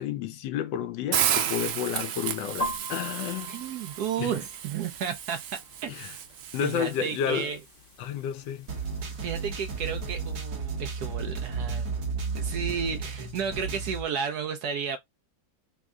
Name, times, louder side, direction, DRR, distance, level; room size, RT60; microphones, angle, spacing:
voice 1, 0.0-3.6 4.2-4.3 5.9-6.1 6.5-7.5 8.0-8.7, left 9 dB, 75° left, 1.2 m, -31 dB
Hiss, 1.1-7.2, right 10 dB, 90° right, 1.4 m, -32 dB
sound 1, 2.6-10.4, equal, 55° left, 0.6 m, -42 dB
voice 2, 3.5-5.4 5.8-5.9 6.6-7.6 9.1-11.9 12.3-15.0, right 7 dB, 70° right, 0.9 m, -32 dB
sound 2, 8.7-14.0, right 5 dB, 55° right, 1.3 m, -33 dB
3.6 x 2.1 x 3.6 m
omnidirectional pair, 2.0 m